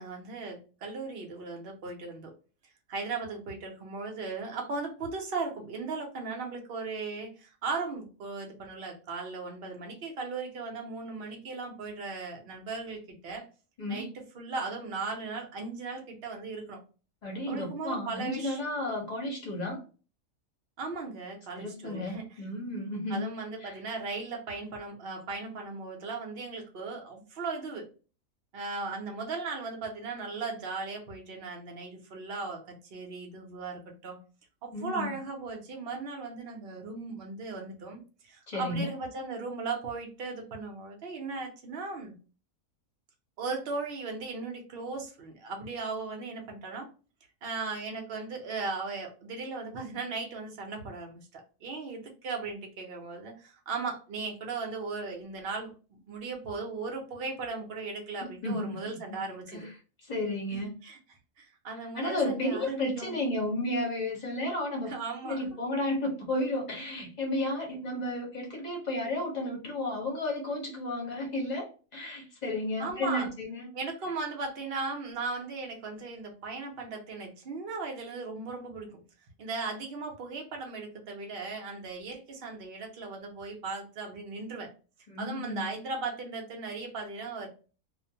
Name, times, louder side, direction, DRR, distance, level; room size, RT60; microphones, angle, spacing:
voice 1, 0.0-2.3 2.9-13.5 13.9-14.1 14.3-16.8 17.5-18.6 20.8-22.2 23.1-27.9 28.5-32.6 32.9-34.2 34.6-42.1 43.4-46.9 47.4-59.7 60.5-61.0 61.4-63.1 64.8-65.4 72.8-73.3 73.7-79.0 79.4-84.7 85.2-87.5, right 4 dB, 55° right, 2 dB, 0.8 m, -37 dB
voice 2, 17.2-19.8 21.6-23.3 23.6-23.7 34.7-35.1 38.5-38.9 58.4-59.2 59.5-59.6 60.1-60.7 61.9-64.9 65.2-73.7 85.1-85.7, left 1 dB, 35° left, -1 dB, 0.8 m, -32 dB
2.4 x 2.1 x 2.7 m, 0.36 s
omnidirectional pair, 1.4 m